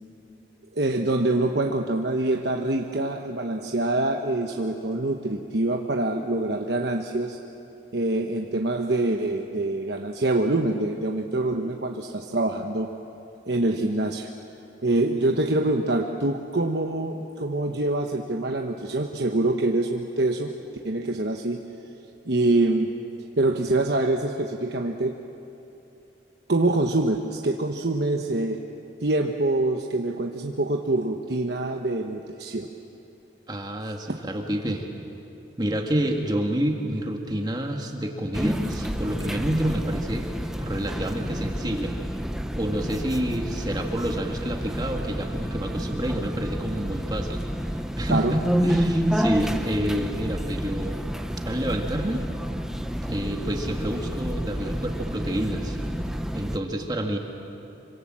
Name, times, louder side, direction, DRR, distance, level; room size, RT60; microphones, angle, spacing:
voice 1, 0.8-7.4 7.9-12.9 13.5-14.3 14.8-20.5 20.8-21.6 22.3-22.9 23.4-25.1 26.5-28.6 29.0-32.7 48.1-48.3, right 2 dB, 65° right, 3 dB, 1.1 m, -25 dB
voice 2, 33.5-34.9 35.6-40.3 40.6-41.9 42.6-47.4 48.0-48.4 48.6-51.0 51.5-52.3 53.0-55.8 56.3-57.2, right 1 dB, 20° right, 2 dB, 1.8 m, -28 dB
sound 1, 38.3-56.6, equal, 5° right, 0.8 m, -29 dB
26.5 x 25.0 x 7.5 m, 2.9 s
head